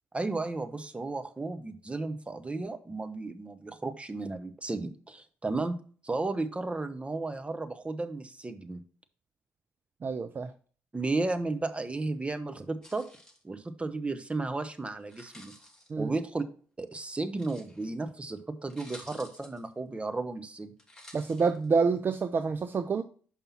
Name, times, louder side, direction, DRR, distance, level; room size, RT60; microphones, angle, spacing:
voice 1, 0.1-5.8 6.0-8.8 10.9-13.0 13.4-15.5 16.0-16.4 16.8-20.7, right 3 dB, 20° right, 1.0 m, -34 dB
voice 2, 10.0-10.5 15.9-16.1 21.1-23.0, right 5 dB, 35° right, 0.5 m, -27 dB
sound 1, 12.8-13.4 15.0-15.9 17.3-17.9 18.4-18.5 18.7-19.7 20.8-21.7, left 1 dB, 10° left, 2.7 m, -52 dB
5.7 x 5.3 x 4.3 m
hypercardioid pair, 45°, 6 cm